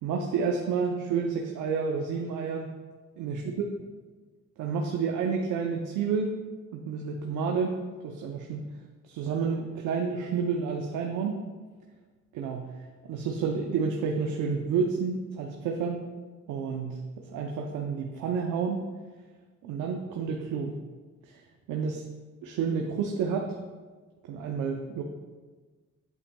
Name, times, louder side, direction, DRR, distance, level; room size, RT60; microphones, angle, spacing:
voice 1, 0.0-2.7 3.2-3.6 4.6-6.4 6.7-7.8 8.0-8.6 9.0-11.4 12.3-12.8 13.1-16.0 16.5-18.8 19.6-20.8 21.7-22.0 22.4-23.5 24.3-25.0, right 5 dB, 90° right, 2 dB, 0.7 m, -30 dB
8.5 x 8.2 x 2.2 m, 1.4 s
cardioid pair, 90°, 30 cm